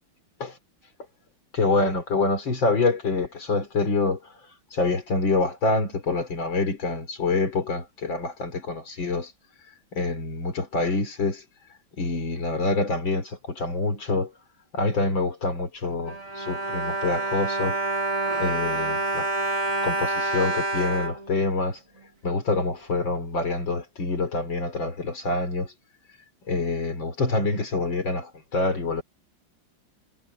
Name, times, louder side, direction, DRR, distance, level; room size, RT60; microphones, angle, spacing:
voice 1, 1.5-9.3 9.9-11.4 12.0-14.3 14.7-17.8 18.4-19.3 19.8-21.8 22.2-25.7 26.5-29.0, left 3 dB, 70° left, 4.7 m, -26 dB
Bowed string instrument, 15.8-22.1 22.8-22.9 23.2-23.3, right 2 dB, 15° right, 5.3 m, -28 dB
omnidirectional pair, 2.2 m